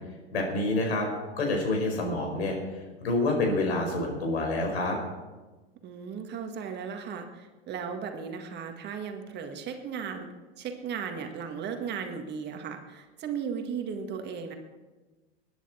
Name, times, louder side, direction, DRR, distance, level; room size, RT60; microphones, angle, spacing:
voice 1, 0.3-1.1 1.4-2.6 3.0-5.0, left 2 dB, 70° left, 2 dB, 5.0 m, -27 dB
voice 2, 5.8-10.3 10.6-14.5, right 6 dB, 30° right, 5 dB, 1.8 m, -36 dB
21.5 x 10.5 x 4.4 m, 1.2 s
hypercardioid pair, 95°, 32 cm